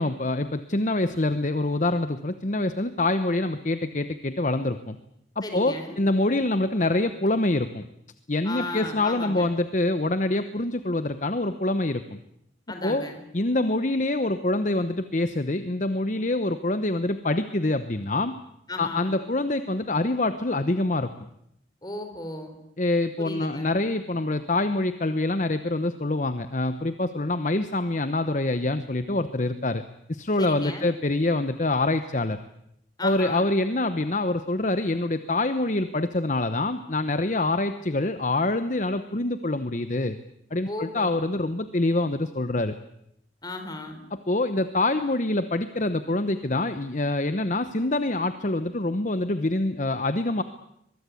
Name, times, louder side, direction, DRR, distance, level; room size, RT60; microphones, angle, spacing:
voice 1, 0.0-5.0 5.4-7.8 8.3-12.2 12.8-13.0 13.3-18.4 18.8-21.1 22.8-29.8 30.1-32.4 33.0-40.2 40.5-42.7 44.3-50.4, left 2 dB, 40° left, 11 dB, 0.9 m, -25 dB
voice 2, 5.4-6.0 8.4-9.5 12.7-13.2 18.7-19.2 21.8-22.6 23.2-23.7 30.4-30.9 33.0-33.5 40.7-41.2 43.4-44.0, left 2 dB, 20° left, 6 dB, 4.1 m, -35 dB
23.0 x 22.5 x 8.4 m, 0.77 s
head